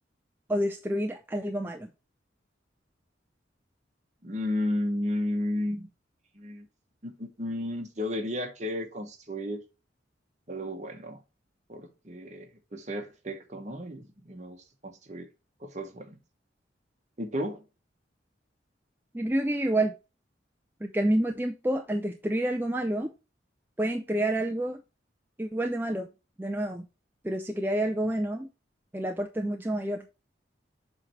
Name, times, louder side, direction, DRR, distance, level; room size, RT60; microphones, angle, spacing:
voice 1, 0.5-1.9 19.1-19.9 20.8-23.1 23.8-24.8 25.4-26.1 26.4-26.9 27.2-28.5 28.9-30.0, right 1 dB, 10° right, 0.5 m, -28 dB
voice 2, 4.2-5.9 6.3-6.7 7.0-9.6 10.5-11.2 11.7-14.6 14.8-15.3 15.6-16.2 17.2-17.6, left 1 dB, 40° right, 1.2 m, -33 dB
7.4 x 3.3 x 4.4 m
head